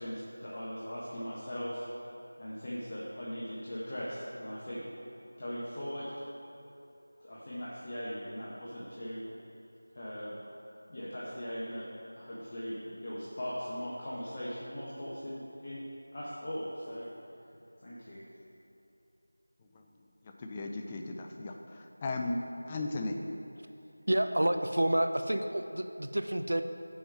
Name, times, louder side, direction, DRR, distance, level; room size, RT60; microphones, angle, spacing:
voice 1, 0.0-1.9 2.4-4.8 5.4-6.1 7.2-9.2 9.9-10.4 10.9-11.9 12.1-15.8 16.1-17.1 17.8-18.3, equal, 35° left, -8 dB, 1.3 m, -39 dB
voice 2, 20.2-22.4 22.7-23.2, left 2 dB, 20° left, 2 dB, 0.4 m, -36 dB
voice 3, 24.1-26.6, right 1 dB, 75° right, 8 dB, 0.6 m, -29 dB
7.0 x 5.3 x 7.3 m, 2.8 s
figure-of-eight pair, 170°, 0 cm